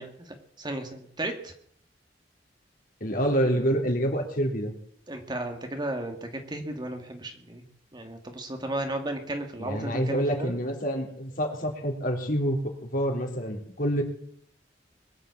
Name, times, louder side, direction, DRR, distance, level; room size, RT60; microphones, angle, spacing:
voice 1, 0.0-1.5 5.1-7.6 7.9-10.6, right 1 dB, 25° right, 5 dB, 2.0 m, -34 dB
voice 2, 3.0-4.7 9.6-14.0, equal, 50° left, 2 dB, 3.8 m, -27 dB
21.5 x 7.7 x 8.3 m, 0.66 s
head